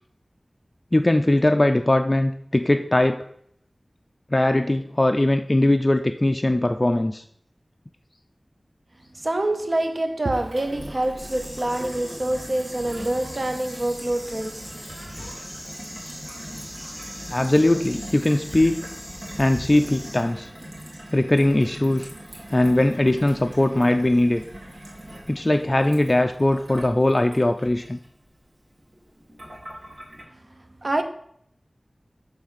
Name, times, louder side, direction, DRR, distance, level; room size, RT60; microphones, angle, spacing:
voice 1, 0.9-3.2 4.3-7.2 17.3-18.9 19.4-20.5 21.1-22.1 22.5-24.4 25.3-28.0, left 1 dB, 30° left, 0.3 m, -20 dB
voice 2, 9.1-15.4 30.3-31.0, right 1 dB, 50° right, 0.7 m, -27 dB
Gurgling / Water tap faucet / Sink (filling or washing), 10.3-30.2, right 1 dB, 85° right, 1.8 m, -42 dB
sound 1, 11.2-20.2, equal, 5° left, 1.6 m, -40 dB
6.6 x 3.2 x 5.7 m
wide cardioid pair, 60°, 0 cm